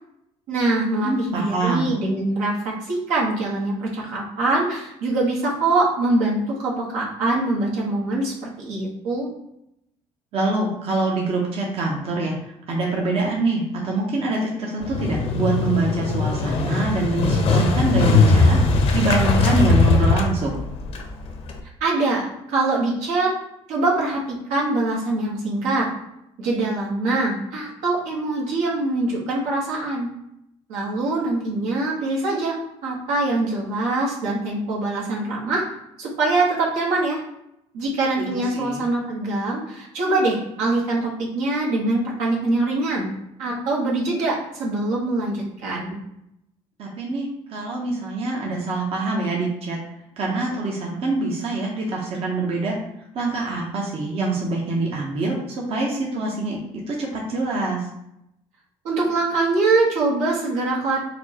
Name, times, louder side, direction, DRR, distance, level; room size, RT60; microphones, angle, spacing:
voice 1, 0.5-9.3 21.8-23.3 23.7-24.2 24.5-25.9 26.4-30.1 30.7-32.6 32.8-35.6 36.0-37.2 37.7-43.1 43.4-46.0 58.8-61.0, right 2 dB, 80° right, -4 dB, 1.1 m, -23 dB
voice 2, 1.0-1.9 10.3-12.4 12.7-18.6 18.9-20.6 38.2-38.8 46.8-49.8 50.2-52.8 53.1-56.6 56.9-57.8, right 2 dB, 55° right, -2 dB, 0.8 m, -25 dB
Motorcycle, 14.8-21.6, left 3 dB, 55° left, 0.6 m, -19 dB
4.2 x 2.1 x 2.8 m, 0.82 s
supercardioid pair, 85°, 12 cm